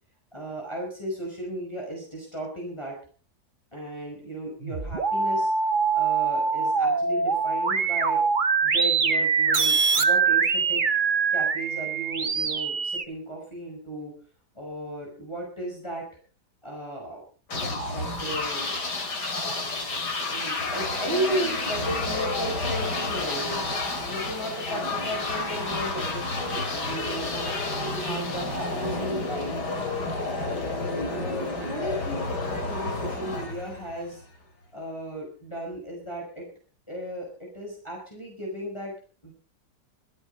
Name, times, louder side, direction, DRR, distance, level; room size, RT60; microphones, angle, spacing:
voice 1, 0.3-3.0 3.7-5.5 5.9-8.2 8.6-10.8 11.3-14.1 14.6-16.0 16.6-17.2 17.6-18.7 20.3-23.6 24.0-27.6 28.0-29.5 29.9-30.0 31.1-34.2 34.7-36.5 36.9-38.9 39.2-39.3, right 1 dB, 15° left, -2 dB, 5.3 m, -35 dB
sound 1, 4.6-13.0, right 5 dB, 35° right, 1.1 m, -23 dB
sound 2, 17.5-34.2, left 2 dB, 90° left, 3.8 m, -30 dB
25.5 x 8.5 x 5.4 m, 0.40 s
omnidirectional pair, 1.7 m